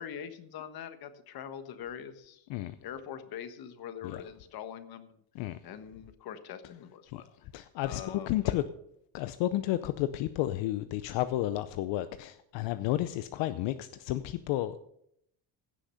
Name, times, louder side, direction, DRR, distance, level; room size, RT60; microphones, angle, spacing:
voice 1, 0.0-2.5 2.8-5.2 5.6-7.3 7.8-8.5, left 8 dB, 55° left, 1.4 m, -43 dB
voice 2, 7.5-8.6 9.1-14.8, left 14 dB, 85° left, 0.7 m, -32 dB
16.5 x 6.4 x 5.7 m
cardioid pair, 130°, 43 cm